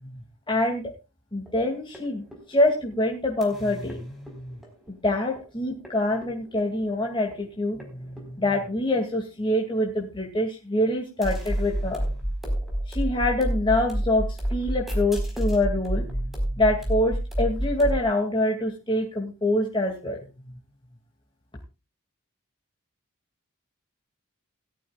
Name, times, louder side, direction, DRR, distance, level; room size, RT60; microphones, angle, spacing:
voice 1, 0.5-0.9 1.3-2.2 2.5-4.5 4.9-12.0 12.9-14.2 14.5-20.2, left 1 dB, 25° left, 0 dB, 2.4 m, -25 dB
sound 1, 1.5-1.6 1.9-2.0 2.3-2.9 3.4-3.5 3.9-4.0 4.3-4.9 5.4-5.5 5.8-5.9 6.2-6.8 7.3-7.4 7.8-7.9 8.2-8.8 11.2-18.0, right 1 dB, ahead, 4.6 m, -28 dB
18.0 x 13.5 x 2.4 m, 0.28 s
head